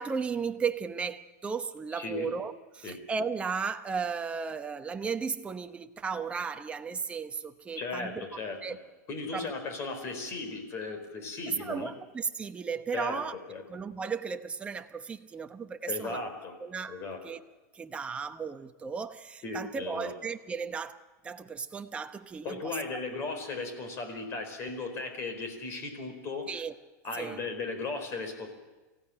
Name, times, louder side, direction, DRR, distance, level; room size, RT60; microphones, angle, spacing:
voice 1, 0.0-8.2 8.6-8.8 9.3-9.5 11.5-13.4 13.7-16.2 16.6-17.4 17.7-22.8 26.5-26.7 27.1-27.4, right 5 dB, 10° right, 7 dB, 1.0 m, -35 dB
voice 2, 2.0-2.3 2.8-3.0 7.8-8.6 9.1-11.9 12.9-13.2 13.5-13.6 15.9-16.6 16.9-17.2 19.4-20.1 22.4-26.5 27.0-28.5, left 3 dB, 30° left, 6 dB, 4.6 m, -36 dB
24.5 x 16.5 x 9.0 m, 1.2 s
supercardioid pair, 155°, 9 cm